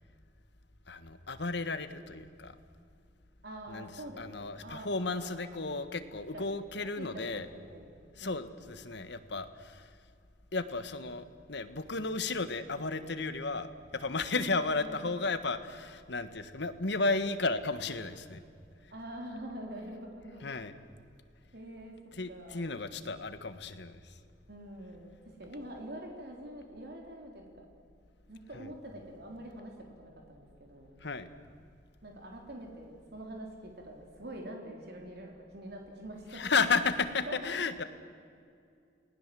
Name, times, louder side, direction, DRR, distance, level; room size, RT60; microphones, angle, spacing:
voice 1, 0.9-2.5 3.7-3.9 4.2-7.5 8.2-9.9 10.5-18.4 20.4-20.7 22.1-24.2 28.5-28.7 31.0-31.3 36.3-37.8, left 3 dB, 65° left, 11 dB, 1.5 m, -33 dB
voice 2, 3.4-5.6 6.3-6.5 7.0-8.7 14.3-14.5 14.8-15.2 18.9-20.5 21.5-21.9 22.3-22.7 24.5-27.7 28.3-31.0 32.0-36.4 37.2-37.6, right 1 dB, 60° right, 1 dB, 3.6 m, -45 dB
29.5 x 19.5 x 7.7 m, 2.4 s
head